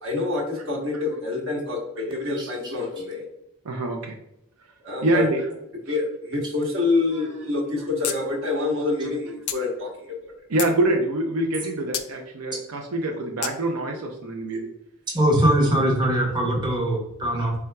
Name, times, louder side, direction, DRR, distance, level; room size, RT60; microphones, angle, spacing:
voice 1, 0.0-3.3 4.8-5.3 5.9-10.3, left 3 dB, 60° right, -1 dB, 1.1 m, -27 dB
voice 2, 3.6-4.1 5.0-5.5 5.9-6.0 10.5-14.7 15.7-15.8, right 1 dB, 80° right, 2 dB, 0.5 m, -25 dB
sound 1, 8.0-8.2 8.5-8.6 9.5-9.6 10.2-10.8 11.9-12.1 13.4-13.5, left 10 dB, 75° left, 0.4 m, -29 dB
voice 3, 15.1-17.5, right 1 dB, 20° right, -2 dB, 0.7 m, -21 dB
4.3 x 3.6 x 2.2 m, 0.83 s
head